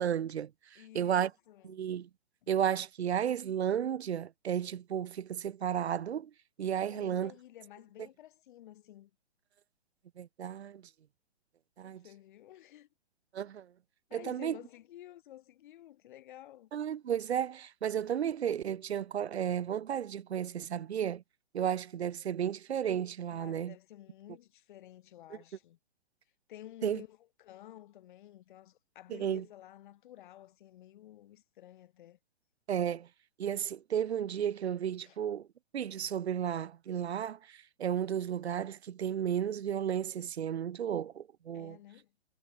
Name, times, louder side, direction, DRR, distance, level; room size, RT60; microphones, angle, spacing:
voice 1, 0.0-1.3 1.6-2.1 2.5-6.3 6.6-7.3 10.2-10.8 11.8-12.0 13.3-13.7 14.1-14.6 16.7-21.2 21.5-23.7 26.8-27.0 29.1-29.4 32.7-33.1 33.4-35.5 35.7-41.8, right 9 dB, 85° right, 0.5 m, -33 dB
voice 2, 0.7-1.8 2.4-2.5 6.8-9.1 11.8-12.9 14.1-16.7 23.3-25.8 26.5-32.2 35.0-35.2 41.5-42.1, left 13 dB, 50° left, 3.2 m, -52 dB
hypercardioid pair, 125°, 32 cm